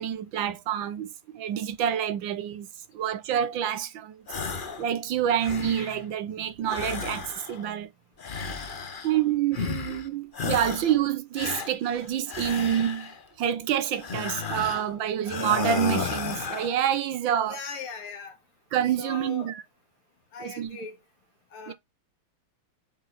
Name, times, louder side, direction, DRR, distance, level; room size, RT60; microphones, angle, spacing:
voice 1, 0.0-2.7 2.9-4.2 4.8-7.9 9.0-13.1 13.4-17.6 18.7-19.6 20.4-20.7 21.7-21.8, right 10 dB, 70° right, 1.3 m, -27 dB
sound 1, 4.3-4.9 5.2-6.1 6.6-7.7 8.2-9.2 9.5-10.1 10.3-11.0 11.3-13.2 14.0-14.9 15.2-16.8, left 5 dB, 60° left, 0.5 m, -33 dB
voice 2, 17.5-18.4 19.0-19.6 20.3-21.0 21.5-21.7, left 5 dB, 80° left, 2.8 m, -39 dB
8.9 x 4.4 x 4.0 m
omnidirectional pair, 2.4 m